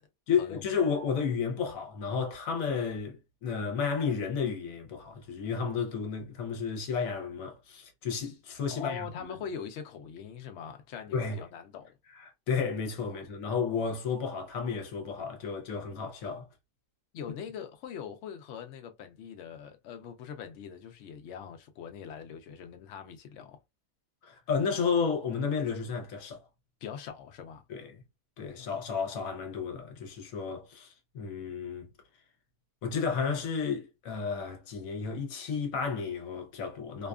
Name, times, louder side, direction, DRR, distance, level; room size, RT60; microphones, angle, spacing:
voice 1, 0.3-9.3 11.1-11.4 12.1-16.5 24.2-26.4 27.7-28.0 28.4-31.9 32.8-37.1, left 6 dB, 60° left, 1.0 m, -32 dB
voice 2, 8.7-12.0 13.1-13.2 17.1-23.6 26.8-27.6 28.6-28.7, left 7 dB, 85° left, 0.6 m, -42 dB
2.7 x 2.3 x 2.3 m
omnidirectional pair, 1.8 m